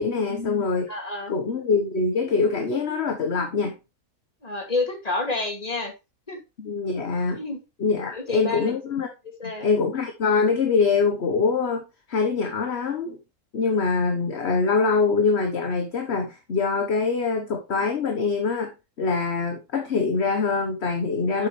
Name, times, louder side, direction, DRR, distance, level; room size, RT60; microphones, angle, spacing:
voice 1, 0.0-0.9 1.3-3.8 6.6-7.4 7.8-9.1 9.4-13.2 13.5-18.7 19.0-21.5, left 4 dB, 50° left, 5 dB, 1.3 m, -24 dB
voice 2, 0.9-1.3 4.4-5.9 6.3-6.4 7.3-7.6 8.1-8.7 9.4-9.7 21.4-21.5, left 3 dB, 25° left, 3 dB, 2.5 m, -29 dB
8.6 x 7.3 x 3.2 m, 0.26 s
omnidirectional pair, 1.6 m